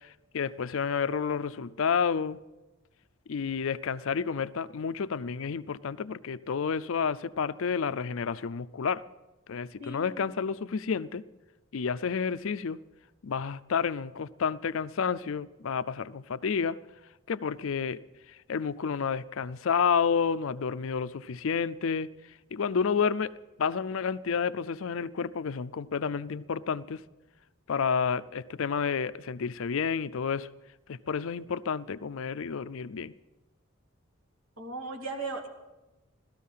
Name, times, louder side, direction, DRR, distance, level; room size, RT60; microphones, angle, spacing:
voice 1, 0.0-2.4 3.3-9.0 9.5-11.2 11.7-12.8 13.2-16.8 17.3-18.0 18.5-22.1 22.5-23.3 23.6-27.0 27.7-30.5 30.9-33.1, left 6 dB, 65° left, 15 dB, 0.5 m, -30 dB
voice 2, 9.8-10.2 34.6-35.5, right 3 dB, 70° right, 2 dB, 2.4 m, -37 dB
16.5 x 13.5 x 5.6 m, 1.1 s
head